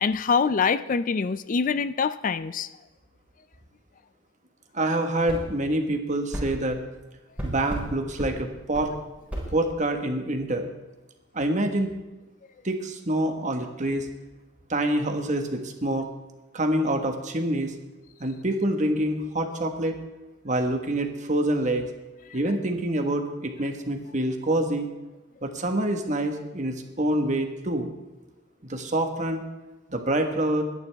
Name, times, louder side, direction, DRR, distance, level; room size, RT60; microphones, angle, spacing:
voice 1, 0.0-2.7, left 5 dB, 45° left, 14 dB, 0.4 m, -24 dB
voice 2, 4.7-6.8 7.4-8.9 9.5-10.7 11.3-11.9 12.6-14.1 14.7-16.1 16.5-17.7 18.2-20.0 20.4-21.8 22.3-24.9 25.4-27.9 28.6-29.4 29.9-30.6, right 1 dB, 40° right, 5 dB, 1.5 m, -26 dB
sound 1, 5.3-5.4 6.3-6.5 7.4-7.9 8.2-8.3 8.7-8.9 9.3-9.5, right 1 dB, 5° right, 4.9 m, -32 dB
21.5 x 10.5 x 3.5 m, 1.1 s
head